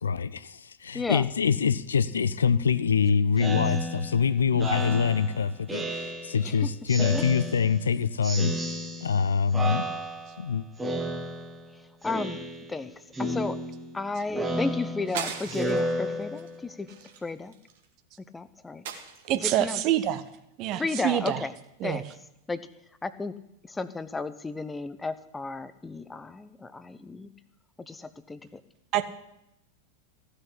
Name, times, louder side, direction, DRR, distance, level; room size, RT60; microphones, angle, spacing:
voice 1, 0.0-8.5 9.0-9.9 10.4-10.7, left 6 dB, 70° left, 0.5 m, -25 dB
Speech synthesizer, 3.4-6.5 6.9-7.9 8.2-9.2 9.5-10.4 10.8-11.7 12.0-12.8 13.1-16.7, right 1 dB, 10° right, 1.8 m, -32 dB
voice 2, 12.0-12.4 12.7-12.9 13.2-13.6 13.9-16.9 17.2-17.5 18.3-18.8 19.4-19.8 20.8-21.5 21.8-22.0 22.5-22.6 23.0-23.3 23.6-27.3 27.9-28.6, left 3 dB, 10° left, 0.8 m, -33 dB
sound 1, 15.1-15.9 16.3-16.5 16.9-17.8 18.8-19.6, right 7 dB, 55° right, 1.9 m, -38 dB
voice 3, 19.3-20.2 20.6-21.4 21.8-22.0 28.9-29.0, right 13 dB, 40° right, 1.1 m, -26 dB
15.5 x 6.7 x 9.9 m
figure-of-eight pair, 90°, 0 cm